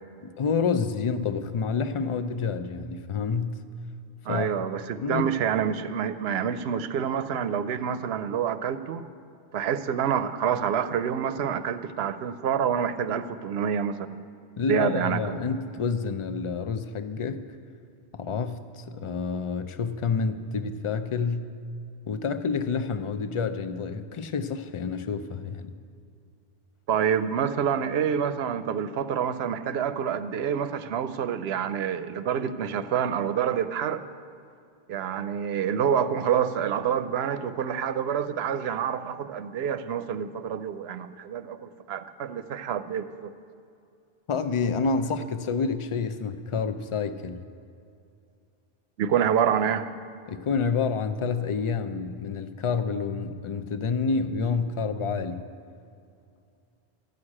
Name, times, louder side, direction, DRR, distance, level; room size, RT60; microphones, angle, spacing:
voice 1, 0.2-3.6 4.3-4.5 5.0-5.3 14.6-17.5 18.1-21.5 22.1-25.7 44.3-47.4 50.3-55.5, left 5 dB, 45° left, 10 dB, 0.4 m, -28 dB
voice 2, 4.3-9.0 9.5-14.2 14.7-15.4 26.9-34.0 34.9-43.3 49.0-49.9, right 8 dB, 80° right, 12 dB, 0.8 m, -27 dB
12.0 x 6.4 x 8.6 m, 2.5 s
omnidirectional pair, 1.1 m